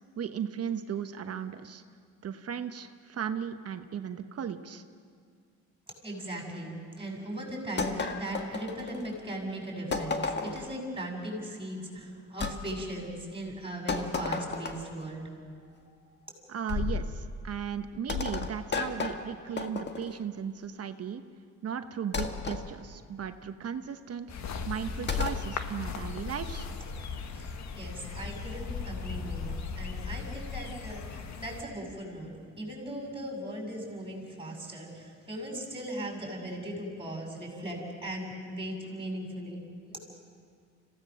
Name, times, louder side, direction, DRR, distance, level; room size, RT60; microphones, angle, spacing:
voice 1, 0.0-1.8 2.2-4.8 16.5-21.2 21.6-24.3 24.7-26.7, right 8 dB, 55° right, 8 dB, 1.1 m, -36 dB
voice 2, 5.9-15.4 15.9-16.4 27.3-40.0, right 1 dB, 15° right, 0 dB, 6.8 m, -38 dB
sound 1, 7.8-9.2 9.9-10.7 12.4-12.6 13.9-15.0 16.7-17.1 18.1-20.2 22.1-22.6 25.1-25.5, left 4 dB, 35° left, 1.7 m, -33 dB
sound 2, 24.3-31.6, left 5 dB, 65° left, 1.5 m, -38 dB
26.0 x 17.0 x 6.5 m, 2.1 s
cardioid pair, 90°, 30 cm